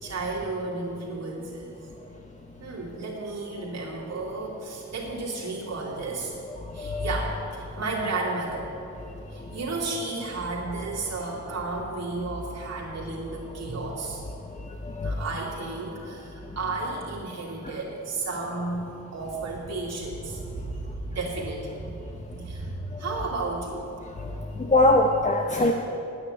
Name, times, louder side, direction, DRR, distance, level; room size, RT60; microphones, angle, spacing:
voice 1, 0.0-1.8 2.6-6.3 6.7-8.7 9.3-14.2 15.0-23.9, right 3 dB, 60° right, -5 dB, 3.0 m, -33 dB
voice 2, 6.8-7.1 15.0-15.1 24.6-25.7, left 2 dB, 25° left, 2 dB, 0.8 m, -21 dB
9.7 x 8.8 x 9.8 m, 2.9 s
wide cardioid pair, 110°, 29 cm